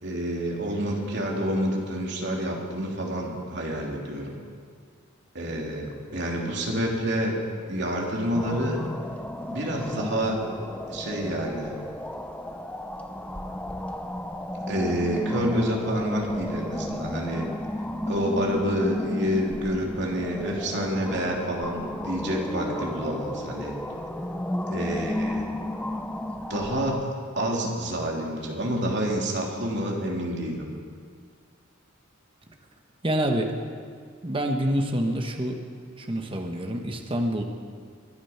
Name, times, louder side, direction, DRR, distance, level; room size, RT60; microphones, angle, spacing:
voice 1, 0.0-4.3 5.3-7.3 7.7-8.8 9.5-10.4 10.9-11.7 14.7-17.4 18.1-23.8 24.7-25.5 26.5-30.6, equal, 55° right, -1 dB, 3.0 m, -28 dB
sound 1, 8.3-27.0, left 1 dB, 5° left, 0.7 m, -33 dB
voice 2, 33.0-33.6 34.2-35.6 36.0-37.4, right 1 dB, 25° right, 4 dB, 1.2 m, -27 dB
23.5 x 10.0 x 5.8 m, 2.1 s
head